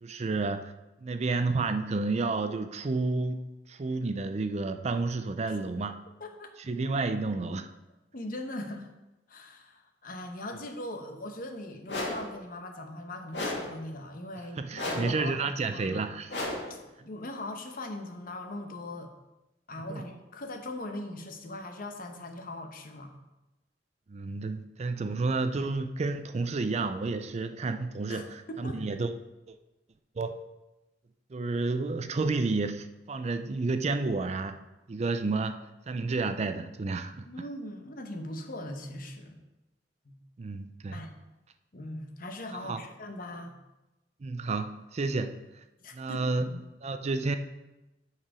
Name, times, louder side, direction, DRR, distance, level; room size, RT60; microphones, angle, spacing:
voice 1, 0.0-0.7 1.0-3.4 3.7-6.0 6.7-7.7 14.6-16.4 19.9-20.0 24.1-29.1 29.5-29.6 30.2-30.3 31.3-34.5 34.9-35.6 35.9-37.3 40.4-41.0 42.6-42.8 44.2-45.6 45.9-46.5 46.8-47.4, right 3 dB, 40° right, 9 dB, 0.4 m, -30 dB
voice 2, 6.2-6.5 8.1-8.9 9.3-15.4 15.7-16.1 16.7-16.8 17.0-19.1 19.7-23.1 28.1-28.8 37.2-39.4 40.0-40.2 40.9-41.1 41.7-43.6 45.8-46.2, left 1 dB, 50° left, 5 dB, 1.0 m, -40 dB
sound 1, 11.9-12.3 13.3-13.8 14.8-15.2 16.3-16.8, left 2 dB, 80° left, 2.0 m, -33 dB
8.7 x 4.7 x 4.9 m, 1.0 s
head